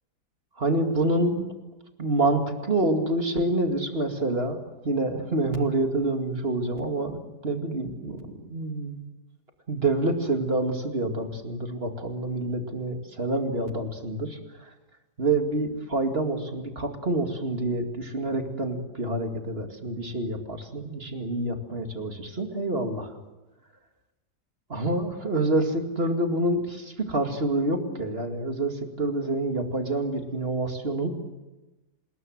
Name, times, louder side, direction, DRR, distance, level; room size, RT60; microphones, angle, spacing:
voice 1, 0.5-1.5 2.0-4.6 4.8-9.0 9.7-14.7 15.2-23.2 24.7-31.1, right 2 dB, 35° right, 5 dB, 2.5 m, -27 dB
26.5 x 21.0 x 7.8 m, 1.1 s
omnidirectional pair, 1.7 m